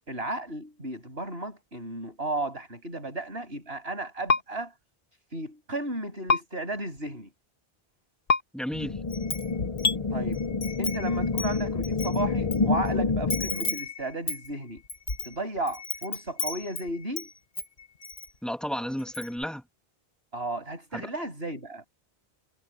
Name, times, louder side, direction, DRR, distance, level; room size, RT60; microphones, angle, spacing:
voice 1, 0.1-4.7 5.3-7.3 10.1-10.4 10.8-14.8 15.2-17.3 20.3-21.9, right 2 dB, 75° right, 7.5 m, -34 dB
sound 1, 4.3-4.4 6.3-6.4 8.3-8.4 9.8-10.0, left 4 dB, 60° left, 1.5 m, -22 dB
voice 2, 8.5-9.0 18.4-19.6 20.9-21.1, equal, ahead, 2.6 m, -32 dB
sound 2, 8.7-13.7, left 4 dB, 35° left, 0.7 m, -28 dB
Wind chime, 9.1-9.9 10.3-12.6 12.9-13.0 13.3-17.3 17.6-18.3 18.6-18.7 19.0-19.4, left 3 dB, 80° left, 2.2 m, -35 dB
omnidirectional pair, 1.0 m